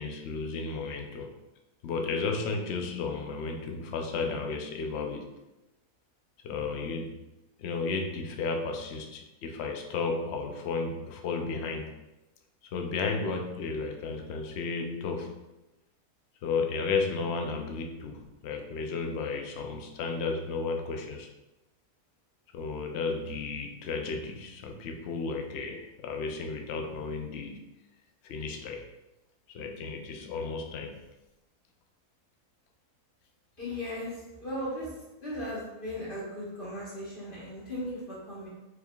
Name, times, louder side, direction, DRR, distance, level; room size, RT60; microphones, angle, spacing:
voice 1, 0.0-1.3 1.8-5.3 6.4-7.1 7.6-11.9 12.7-15.3 16.4-21.3 22.5-27.7 28.2-28.9 29.5-30.9, left 4 dB, 65° left, 3 dB, 0.6 m, -33 dB
voice 2, 33.6-34.9 35.2-38.5, left 1 dB, 35° left, -6 dB, 1.2 m, -37 dB
4.7 x 3.4 x 2.3 m, 1.0 s
omnidirectional pair, 1.6 m